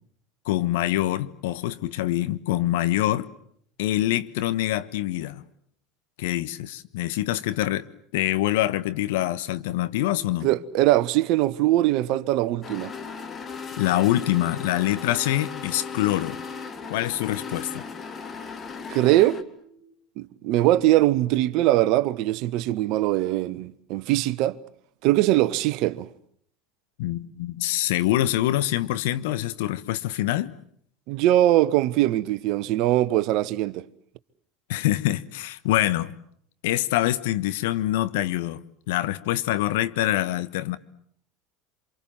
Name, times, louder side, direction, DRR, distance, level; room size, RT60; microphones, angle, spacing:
voice 1, 0.5-3.3 3.8-5.4 6.2-7.8 8.1-10.5 13.8-16.4 16.9-17.8 27.0-30.5 34.7-36.2 36.6-40.8, left 14 dB, 70° left, 1.3 m, -25 dB
sound 1, 9.9-19.9, left 1 dB, 90° left, 5.2 m, -48 dB
voice 2, 10.4-12.9 18.9-19.4 20.2-24.6 25.0-26.1 31.1-33.9, right 15 dB, 60° right, 1.1 m, -21 dB
sound 2, 12.6-19.4, left 5 dB, 35° left, 2.6 m, -37 dB
28.5 x 26.5 x 7.4 m
hypercardioid pair, 70°, 0 cm